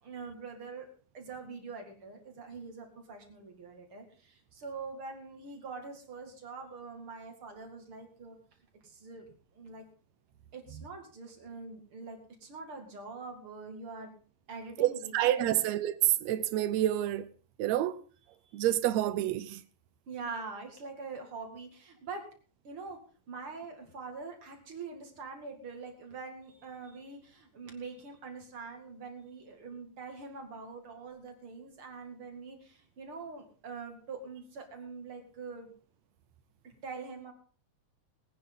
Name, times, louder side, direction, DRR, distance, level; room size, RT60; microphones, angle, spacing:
voice 1, 0.0-0.9 1.1-8.4 8.8-9.3 9.5-9.8 10.5-14.1 14.5-15.6 18.4-18.6 20.1-22.3 22.6-23.0 23.3-35.7 36.6-37.3, right 4 dB, 40° right, 2.7 m, -44 dB
voice 2, 14.8-17.3 17.6-17.9 18.5-19.6, right 13 dB, 80° right, 1.6 m, -28 dB
21.0 x 9.5 x 3.7 m
omnidirectional pair, 4.0 m